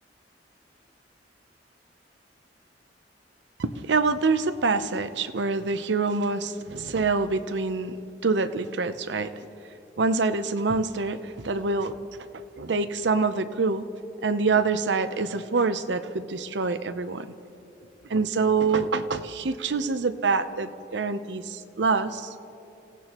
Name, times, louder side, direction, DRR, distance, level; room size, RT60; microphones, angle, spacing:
voice 1, 3.6-8.0 8.2-9.3 10.0-12.0 12.6-13.9 14.2-17.3 18.1-22.3, right 4 dB, 75° right, 11 dB, 0.7 m, -26 dB
28.5 x 16.5 x 3.0 m, 2.8 s
head